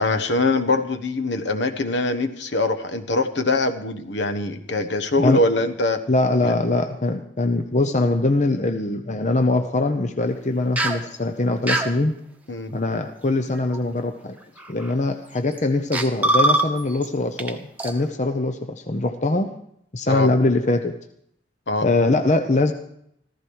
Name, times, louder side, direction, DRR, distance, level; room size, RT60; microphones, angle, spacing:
voice 1, 0.0-6.0 6.4-6.5 12.5-12.7 20.1-20.3 21.7-21.9, left 2 dB, 65° left, 8 dB, 1.2 m, -23 dB
voice 2, 6.1-12.2 12.7-14.4 14.7-19.5 19.9-21.0 21.8-22.7, left 2 dB, 40° left, 6 dB, 0.8 m, -22 dB
sound 1, 10.8-11.0 11.7-11.9 13.6-13.8 14.6-14.9 15.6-15.7 15.9-17.1 17.4-17.5 17.8-17.9, right 1 dB, 10° right, 1.1 m, -21 dB
15.0 x 15.0 x 4.7 m, 0.72 s
head